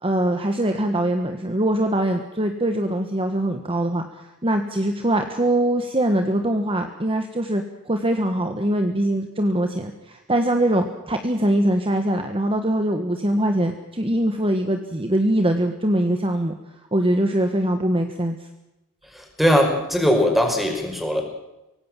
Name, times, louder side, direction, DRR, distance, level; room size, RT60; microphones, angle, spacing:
voice 1, 0.0-16.5 16.9-18.4, right 1 dB, 25° right, 5 dB, 1.5 m, -22 dB
voice 2, 19.1-21.2, equal, ahead, 3 dB, 5.5 m, -20 dB
24.0 x 18.5 x 7.6 m, 0.97 s
head